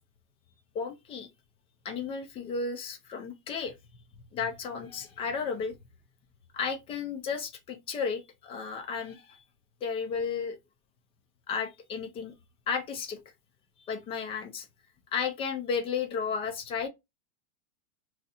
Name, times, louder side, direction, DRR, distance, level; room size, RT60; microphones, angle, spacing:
voice 1, 0.7-1.3 1.8-3.7 4.3-5.8 6.5-9.4 9.8-10.6 11.5-12.3 12.7-13.2 13.8-14.7 15.1-16.9, left 6 dB, 15° left, 0.3 m, -33 dB
2.7 x 2.3 x 4.0 m
supercardioid pair, 140°, 39 cm